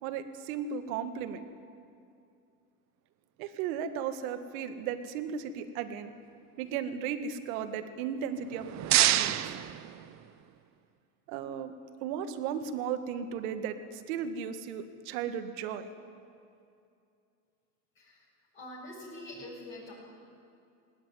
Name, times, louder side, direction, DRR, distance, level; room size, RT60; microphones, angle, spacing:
voice 1, 0.0-1.4 3.4-6.1 6.6-9.5 11.3-11.8 12.0-15.9, right 8 dB, 65° right, 10 dB, 1.9 m, -35 dB
sound 1, 8.3-10.6, right 13 dB, 35° right, 0.9 m, -28 dB
voice 2, 18.5-19.9, left 1 dB, 25° left, -7 dB, 7.8 m, -44 dB
19.0 x 18.5 x 9.5 m, 2.5 s
hypercardioid pair, 105°, 46 cm